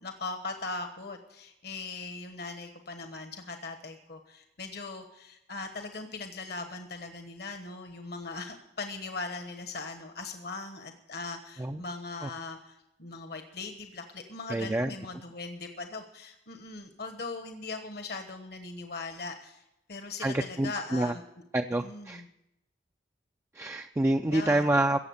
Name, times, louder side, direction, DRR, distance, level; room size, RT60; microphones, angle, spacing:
voice 1, 0.0-19.6 19.9-21.2 21.8-22.2 24.3-24.6, left 3 dB, 60° left, 6 dB, 1.2 m, -40 dB
voice 2, 14.5-14.9 20.2-21.1 21.5-22.2 23.5-25.1, right 1 dB, 15° right, 5 dB, 0.4 m, -27 dB
16.0 x 7.6 x 8.0 m, 0.87 s
head